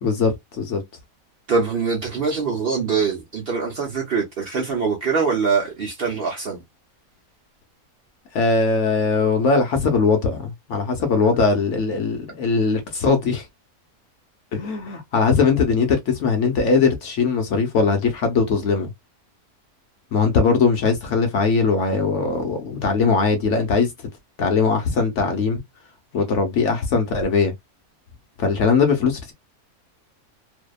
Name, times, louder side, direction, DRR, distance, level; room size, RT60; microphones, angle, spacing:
voice 1, 0.0-0.8 8.3-13.5 14.5-18.9 20.1-23.9 24.4-25.6 26.1-27.5 28.4-29.3, left 4 dB, 65° left, 0.8 m, -20 dB
voice 2, 1.5-6.6, right 5 dB, 55° right, 0.7 m, -23 dB
2.7 x 2.1 x 2.2 m
omnidirectional pair, 1.6 m